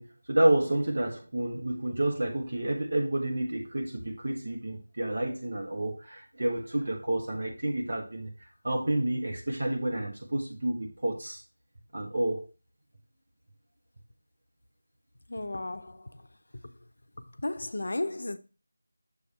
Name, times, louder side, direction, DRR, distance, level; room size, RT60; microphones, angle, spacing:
voice 1, 0.0-8.3 8.6-11.4 11.9-12.5, right 1 dB, 55° right, 1.5 m, -29 dB
voice 2, 15.3-16.3 17.4-18.4, left 2 dB, 65° left, 0.6 m, -34 dB
7.0 x 3.4 x 4.2 m
figure-of-eight pair, 170°, 0 cm